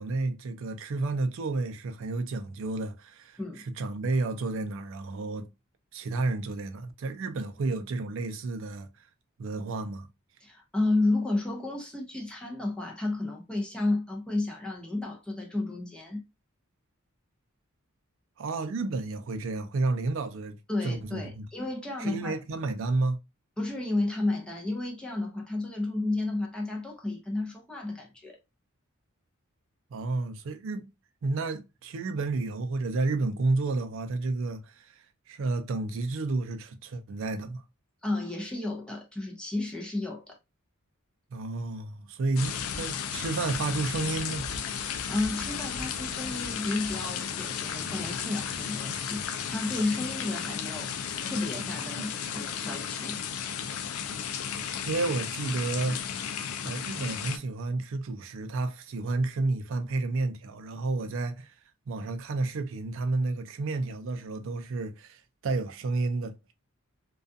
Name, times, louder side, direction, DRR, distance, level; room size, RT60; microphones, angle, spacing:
voice 1, 0.0-5.5 5.9-8.9 9.4-10.1 18.4-21.5 22.0-23.2 29.9-30.9 31.2-37.6 41.3-44.4 52.0-52.4 54.9-56.1 56.6-61.5 61.9-66.3, right 3 dB, 60° right, 0.4 m, -31 dB
voice 2, 10.4-16.2 20.7-22.4 23.6-28.4 38.0-40.4 44.8-53.2, left 2 dB, 5° left, 0.6 m, -32 dB
sound 1, 42.4-57.4, left 7 dB, 75° left, 0.4 m, -34 dB
2.3 x 2.3 x 2.5 m
head